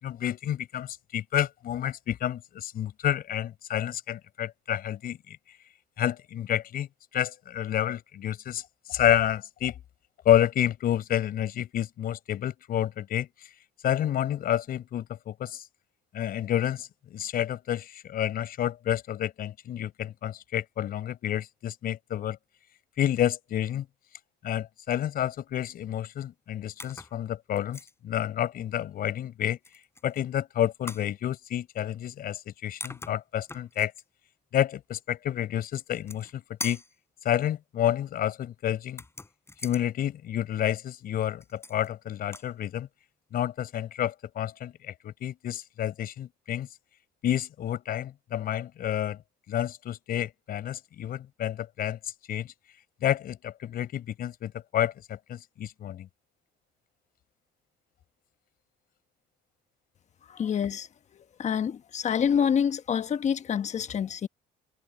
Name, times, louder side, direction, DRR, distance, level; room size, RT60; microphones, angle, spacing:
voice 1, 0.0-5.4 6.0-6.9 7.1-8.6 8.9-9.7 10.2-13.3 13.8-15.6 16.1-22.4 23.0-23.9 24.4-29.6 30.0-33.9 34.5-36.8 37.2-39.0 39.6-42.9 43.3-46.7 47.2-49.2 49.5-52.0 52.3-52.5 53.0-56.1, left 11 dB, 60° left, 5.5 m, -29 dB
sound 1, 26.8-27.2 27.6-27.9 29.6-30.2 30.9-31.1 32.4-32.5 32.8-34.0 35.8-36.3 36.6-37.0 38.9-39.8 41.4-41.9 42.2-42.5, left 2 dB, 15° left, 5.7 m, -42 dB
voice 2, 60.3-60.9 61.4-64.3, left 7 dB, 45° left, 1.2 m, -27 dB
cardioid pair, 110°, 17 cm